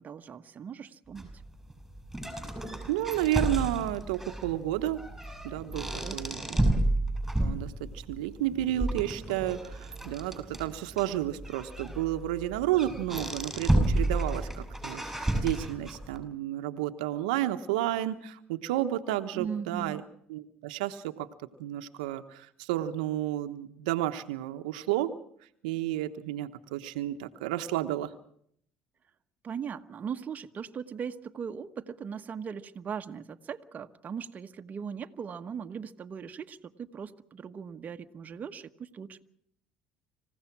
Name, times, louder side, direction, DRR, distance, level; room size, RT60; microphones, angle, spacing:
voice 1, 0.0-1.3 6.0-6.7 19.3-20.1 29.4-39.2, right 7 dB, 40° right, 7 dB, 1.3 m, -39 dB
sound 1, 1.2-16.2, right 1 dB, ahead, 7.7 m, -32 dB
voice 2, 2.9-5.0 5.4-6.7 7.4-20.0 20.3-21.3 21.6-25.2 25.6-28.1, right 13 dB, 80° right, 8 dB, 1.1 m, -31 dB
26.5 x 16.0 x 6.0 m, 0.66 s
hypercardioid pair, 75°, 4 cm